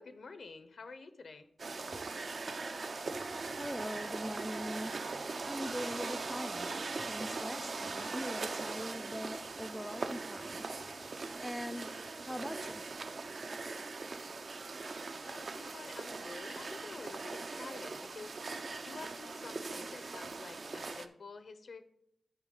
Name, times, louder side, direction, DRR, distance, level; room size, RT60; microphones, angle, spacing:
voice 1, 0.0-1.5 15.2-18.3 18.8-21.9, left 4 dB, 70° left, 0.7 m, -49 dB
sound 1, 1.6-21.1, right 3 dB, 60° right, 0.5 m, -40 dB
voice 2, 3.5-6.7 7.1-10.6 11.4-11.9 12.3-12.8, equal, ahead, 0.4 m, -42 dB
12.0 x 4.6 x 3.8 m
wide cardioid pair, 75°, 0 cm